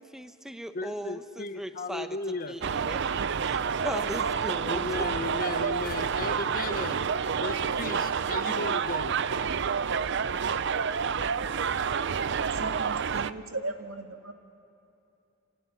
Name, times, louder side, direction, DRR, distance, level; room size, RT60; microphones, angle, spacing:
voice 1, 0.0-3.0 3.4-5.1, equal, ahead, 7 dB, 1.0 m, -38 dB
voice 2, 0.7-2.6 4.7-9.1, left 3 dB, 45° left, 12 dB, 0.8 m, -36 dB
sound 1, 2.6-13.3, right 6 dB, 55° right, 0.5 m, -29 dB
voice 3, 12.4-14.3, right 2 dB, 80° right, 5 dB, 1.9 m, -38 dB
28.0 x 17.0 x 9.6 m, 2.8 s
head